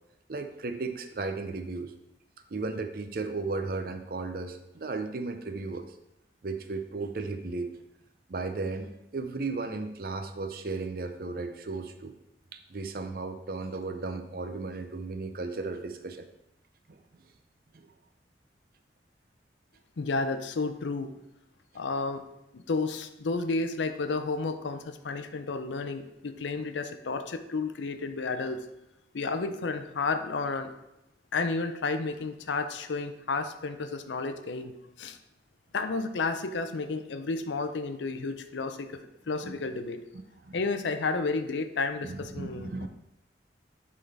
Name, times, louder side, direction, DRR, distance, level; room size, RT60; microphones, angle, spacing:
voice 1, 0.3-1.9 2.5-6.0 6.4-7.7 8.3-12.1 12.5-16.3 16.9-17.0 17.7-17.9 39.4-39.5 40.4-40.6 42.0-42.9, right 3 dB, 55° right, 7 dB, 0.6 m, -35 dB
voice 2, 20.0-21.1 21.7-22.2 22.5-28.7 29.1-30.7 31.3-35.2 35.7-39.0 39.3-40.0 40.5-42.9, left 3 dB, 90° left, 9 dB, 0.6 m, -31 dB
10.0 x 3.8 x 3.4 m, 0.88 s
head